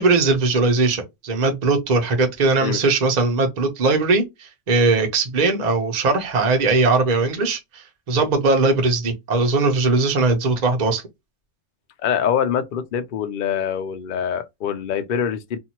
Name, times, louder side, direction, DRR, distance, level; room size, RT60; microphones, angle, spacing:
voice 1, 0.0-11.0, right 3 dB, 35° right, 0.8 m, -20 dB
voice 2, 12.0-15.6, left 8 dB, 90° left, 0.4 m, -24 dB
2.7 x 2.5 x 2.8 m
omnidirectional pair, 1.5 m